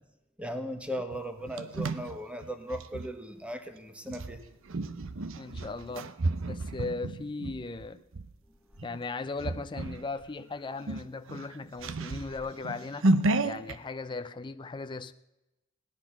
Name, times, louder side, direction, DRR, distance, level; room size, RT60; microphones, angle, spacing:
voice 1, 0.4-4.4, equal, 5° right, 1.2 m, -37 dB
sound 1, 1.1-3.1 4.1-8.3 8.8-9.0 9.4-10.1 10.4-10.5 10.8-13.8, right 2 dB, 65° right, 0.7 m, -32 dB
voice 2, 5.4-6.1 6.5-8.0 8.8-13.1 13.4-15.1, left 3 dB, 25° left, 0.4 m, -37 dB
17.5 x 10.5 x 5.8 m
head